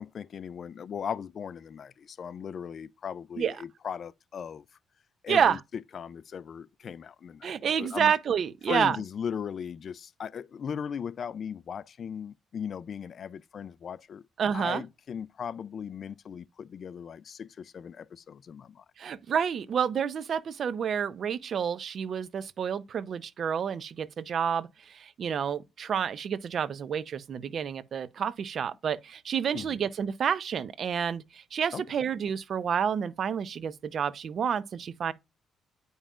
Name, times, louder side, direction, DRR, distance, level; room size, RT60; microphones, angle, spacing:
voice 1, 0.0-4.7 5.2-8.1 8.7-14.2 14.5-18.8 29.5-29.8 31.7-31.8, left 7 dB, 55° left, 0.4 m, -38 dB
voice 2, 5.3-5.6 7.4-9.0 14.4-14.8 19.0-35.1, right 7 dB, 55° right, 0.6 m, -29 dB
9.7 x 5.5 x 2.4 m
cardioid pair, 90°, 0 cm